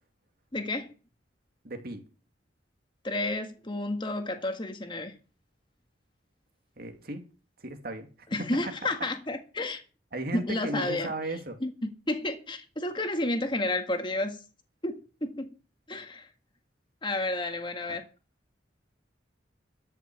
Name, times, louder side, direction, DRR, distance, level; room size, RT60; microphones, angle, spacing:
voice 1, 0.5-0.9 3.0-5.1 8.3-9.8 10.3-11.1 11.6-14.4 14.8-15.5 15.9-16.3 17.0-18.0, left 2 dB, 25° left, 1.8 m, -31 dB
voice 2, 1.6-2.0 6.8-7.2 7.6-8.1 8.8-8.9 10.1-11.6 17.9-18.0, right 1 dB, 55° right, 2.4 m, -35 dB
13.5 x 6.2 x 8.4 m
head